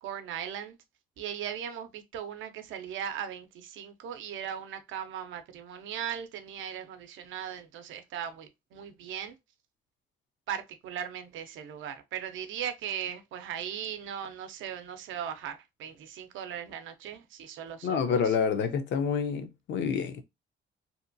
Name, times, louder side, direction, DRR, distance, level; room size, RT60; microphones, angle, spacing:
voice 1, 0.0-0.8 1.2-9.4 10.5-18.4, right 9 dB, 80° right, 0.5 m, -38 dB
voice 2, 17.8-20.2, left 6 dB, 65° left, 0.5 m, -28 dB
2.8 x 2.2 x 2.5 m
cardioid pair, 90°, 20 cm